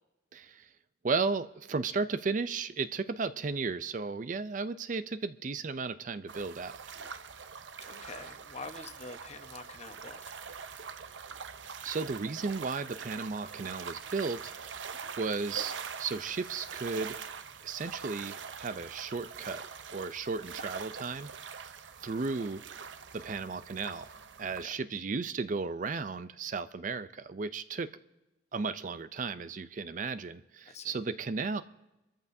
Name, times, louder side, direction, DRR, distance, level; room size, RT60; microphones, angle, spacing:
voice 1, 0.3-0.7 1.0-6.8 11.8-17.2 17.6-19.6 19.9-21.3 22.0-22.6 23.1-24.1 24.4-27.9 28.5-31.6, right 4 dB, 45° right, 0.4 m, -34 dB
sound 1, 6.3-24.6, right 6 dB, 80° right, 0.7 m, -44 dB
voice 2, 7.8-10.3 24.5-24.8 30.7-31.0, left 3 dB, 35° left, 1.0 m, -46 dB
26.0 x 14.0 x 2.7 m
head